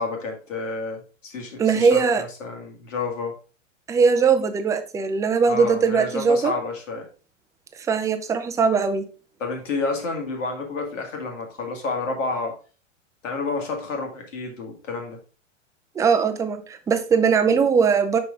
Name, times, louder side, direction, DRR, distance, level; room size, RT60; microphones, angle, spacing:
voice 1, 0.0-3.3 5.5-7.1 9.4-12.5 13.2-15.2, left 3 dB, 75° left, 2 dB, 2.1 m, -30 dB
voice 2, 1.6-2.2 3.9-6.5 7.8-9.0 16.0-18.2, right 5 dB, 10° right, 8 dB, 0.4 m, -20 dB
5.7 x 4.7 x 3.6 m, 0.37 s
hypercardioid pair, 100°, 38 cm